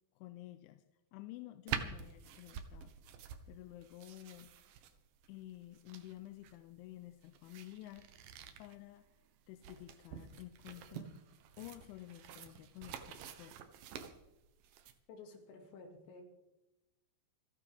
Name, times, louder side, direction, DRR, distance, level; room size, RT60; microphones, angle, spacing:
voice 1, 0.2-0.8 1.1-2.9 3.5-4.5 5.3-8.1 8.6-9.1 9.5-11.1 11.6-13.6, left 15 dB, 90° left, 9 dB, 3.1 m, -51 dB
Book - Page find, 1.7-14.9, right 8 dB, 75° right, 2.1 m, -48 dB
voice 2, 15.1-16.2, left 4 dB, 75° left, 3 dB, 4.2 m, -53 dB
28.5 x 9.6 x 3.5 m, 1.0 s
omnidirectional pair, 5.3 m